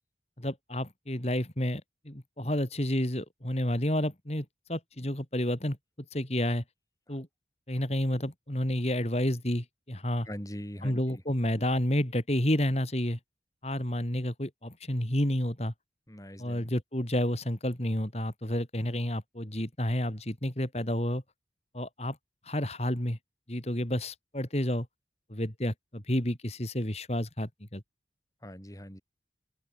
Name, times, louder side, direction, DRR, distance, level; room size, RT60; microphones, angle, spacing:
voice 1, 0.4-5.8 6.1-6.6 7.1-7.3 7.7-10.3 10.8-13.2 13.6-15.7 16.4-21.2 21.7-22.2 22.5-23.2 23.5-24.9 25.3-27.8, left 1 dB, 35° left, 3.6 m, -30 dB
voice 2, 10.3-11.2 16.1-16.7 28.4-29.0, equal, 20° left, 7.7 m, -42 dB
open air
head